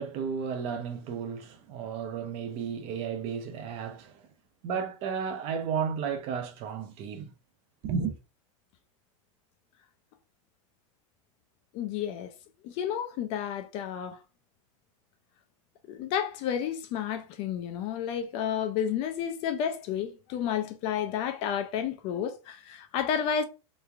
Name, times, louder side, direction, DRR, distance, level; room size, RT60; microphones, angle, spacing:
voice 1, 0.0-4.3 4.6-7.3 7.8-8.2, right 6 dB, 35° right, 0.5 m, -33 dB
voice 2, 11.7-12.3 12.6-14.2 15.9-23.4, left 8 dB, 35° left, 0.4 m, -31 dB
3.4 x 3.1 x 2.4 m
supercardioid pair, 155°, 18 cm